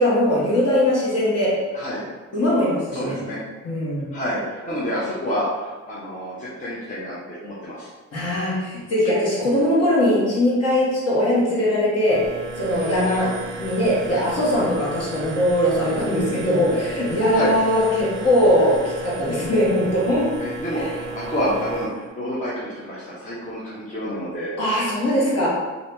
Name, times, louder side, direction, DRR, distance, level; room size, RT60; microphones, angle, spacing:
voice 1, 0.0-1.5 2.3-3.2 3.6-4.1 8.1-12.2 12.6-13.3 13.6-20.2 20.7-20.9 24.6-25.5, left 1 dB, 55° left, -6 dB, 1.5 m, -20 dB
voice 2, 2.9-3.4 4.1-7.9 14.1-14.2 17.3-17.5 20.4-24.5, equal, 25° left, -8 dB, 0.9 m, -28 dB
sound 1, 12.1-21.9, right 3 dB, 40° right, 0.7 m, -34 dB
2.8 x 2.7 x 3.4 m, 1.3 s
cardioid pair, 90°, 30 cm